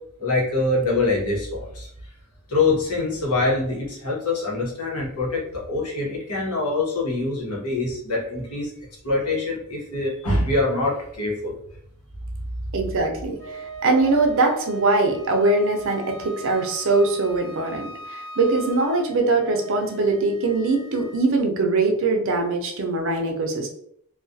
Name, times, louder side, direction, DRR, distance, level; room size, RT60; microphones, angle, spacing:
voice 1, 0.2-1.9 2.5-8.7 9.0-11.5, left 2 dB, 85° left, -4 dB, 1.0 m, -24 dB
voice 2, 12.7-23.7, right 3 dB, 60° right, 3 dB, 0.5 m, -22 dB
Wind instrument woodwind instrument, 13.4-21.2, right 3 dB, 15° left, 0.7 m, -39 dB
2.3 x 2.2 x 2.6 m, 0.68 s
head